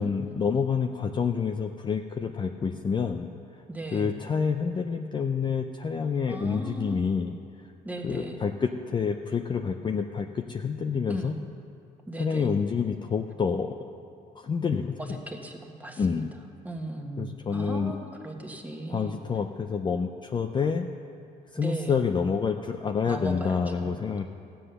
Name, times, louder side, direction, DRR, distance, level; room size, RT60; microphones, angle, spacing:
voice 1, 0.0-3.3 3.9-7.4 8.0-11.3 12.2-13.7 14.4-15.0 16.0-16.3 17.2-17.9 18.9-20.9 21.5-24.3, left 6 dB, 25° left, 5 dB, 0.5 m, -28 dB
voice 2, 3.7-4.2 6.3-7.0 7.8-8.4 11.1-11.4 12.1-12.5 15.0-16.2 16.6-19.2 21.6-22.0 23.1-23.9, right 1 dB, 10° right, 2 dB, 1.4 m, -37 dB
15.0 x 7.7 x 6.7 m, 2.5 s
cardioid pair, 110°, 17 cm